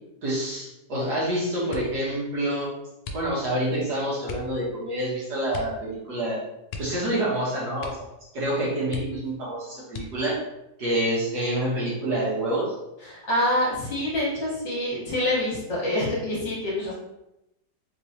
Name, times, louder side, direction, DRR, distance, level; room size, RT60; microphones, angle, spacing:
voice 1, 0.2-2.7 3.1-6.4 6.8-8.0 8.3-10.4 10.8-12.7, right 1 dB, 70° right, -6 dB, 1.6 m, -27 dB
sound 1, 1.7-2.1 3.0-3.6 4.2-4.6 5.5-5.9 6.1-6.2 6.7-7.4 7.8-8.2 8.5-8.6 8.9-9.4 9.9-10.4 11.1-11.8 12.1-12.5, left 3 dB, 85° left, 1.2 m, -39 dB
voice 2, 13.0-17.0, left 1 dB, 45° left, -6 dB, 1.5 m, -26 dB
3.6 x 3.0 x 2.7 m, 0.89 s
omnidirectional pair, 1.9 m